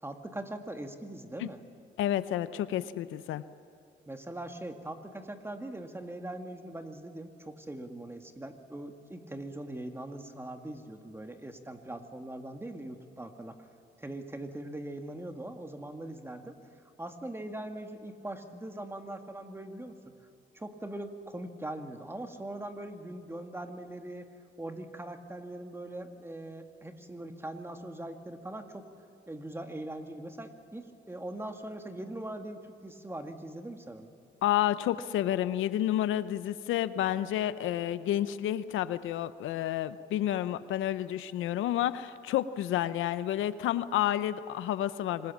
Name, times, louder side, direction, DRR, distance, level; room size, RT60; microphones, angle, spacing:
voice 1, 0.0-1.6 4.1-13.7 14.0-16.6 17.0-20.1 20.5-24.3 24.6-28.9 29.3-34.1, right 1 dB, 10° right, 6 dB, 2.1 m, -41 dB
voice 2, 2.0-3.4 34.4-45.3, left 12 dB, 85° left, 14 dB, 0.7 m, -30 dB
26.5 x 20.0 x 7.4 m, 2.7 s
cardioid pair, 90°, 20 cm